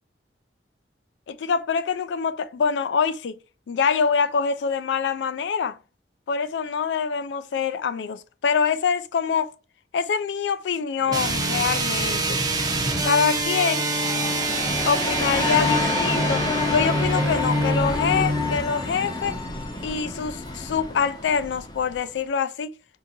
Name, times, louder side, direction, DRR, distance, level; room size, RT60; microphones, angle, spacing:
voice 1, 1.3-3.4 3.7-5.8 6.3-9.5 9.9-12.4 13.0-13.9 14.9-19.4 19.8-22.7, left 6 dB, 80° left, 0.3 m, -25 dB
sound 1, 11.1-18.6, right 1 dB, 20° right, 0.6 m, -25 dB
sound 2, 13.4-22.2, left 2 dB, 25° left, 0.7 m, -29 dB
3.7 x 2.5 x 2.7 m
head